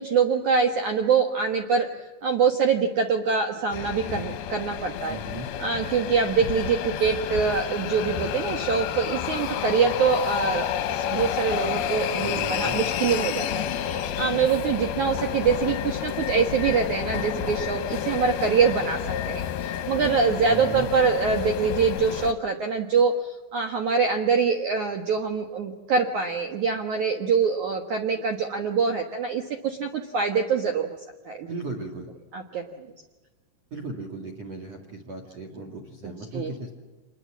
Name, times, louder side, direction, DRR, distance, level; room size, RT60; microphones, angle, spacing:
voice 1, 0.0-1.9 2.2-5.2 5.6-19.0 19.3-31.0 31.3-31.5 32.3-32.6 36.3-36.5, right 5 dB, 70° right, 4 dB, 1.8 m, -24 dB
sound 1, 3.7-22.3, left 9 dB, 70° left, 2.5 m, -30 dB
voice 2, 5.1-5.5 12.2-12.8 20.5-20.9 31.5-32.1 33.7-36.7, right 2 dB, 45° right, 4 dB, 2.3 m, -36 dB
27.0 x 21.0 x 7.4 m, 1.2 s
omnidirectional pair, 5.5 m